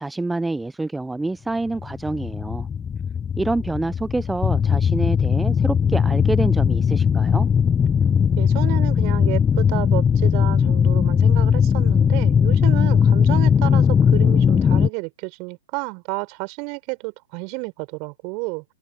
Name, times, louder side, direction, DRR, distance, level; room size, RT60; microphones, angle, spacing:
voice 1, 0.0-2.7 3.4-7.5, right 2 dB, 5° right, 0.8 m, -27 dB
sound 1, 1.7-14.9, left 7 dB, 15° left, 1.0 m, -18 dB
voice 2, 8.3-18.6, right 33 dB, 40° right, 4.9 m, -31 dB
figure-of-eight pair, 115°, 0 cm